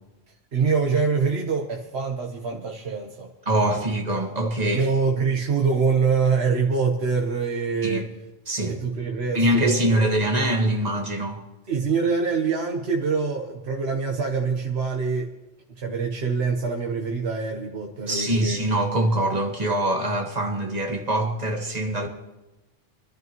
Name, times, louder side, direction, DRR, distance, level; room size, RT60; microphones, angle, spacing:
voice 1, 0.5-3.3 3.7-3.8 4.7-8.0 8.8-10.1 11.7-15.3 15.8-18.7, right 5 dB, 85° right, 1.4 m, -25 dB
voice 2, 3.5-4.9 7.8-8.1 8.5-8.8 9.3-11.4 18.1-22.1, right 1 dB, 40° right, 1.7 m, -23 dB
24.5 x 12.0 x 3.0 m
omnidirectional pair, 1.1 m